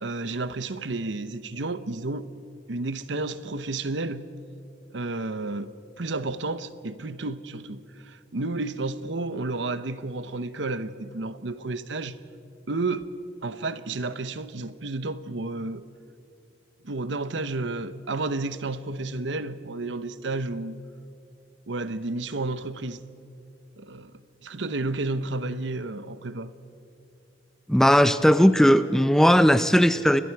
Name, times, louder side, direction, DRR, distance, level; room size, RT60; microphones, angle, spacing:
voice 1, 0.0-2.3 2.7-4.3 4.9-12.2 12.7-13.1 13.4-15.8 16.8-20.8 21.7-23.0 23.8-24.1 24.4-26.5, right 2 dB, 70° right, 0.9 m, -31 dB
voice 2, 27.7-30.2, equal, 5° left, 0.5 m, -18 dB
30.0 x 22.5 x 4.7 m
head